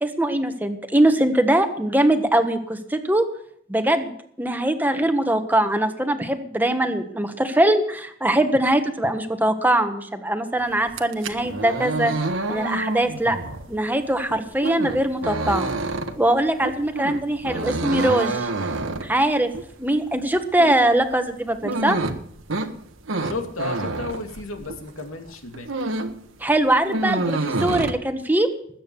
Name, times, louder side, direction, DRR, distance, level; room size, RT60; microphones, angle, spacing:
voice 1, 0.0-3.2 3.7-12.1 12.5-13.4 13.7-15.7 16.2-18.5 19.0-19.5 19.8-22.0 26.4-28.5, right 1 dB, 10° right, 7 dB, 1.4 m, -22 dB
sound 1, 10.8-24.9 25.3-26.2 26.5-27.9, right 2 dB, 70° right, 1.5 m, -28 dB
voice 2, 23.2-25.7, left 3 dB, 90° left, 4 dB, 2.5 m, -33 dB
20.0 x 8.9 x 7.0 m, 0.66 s
head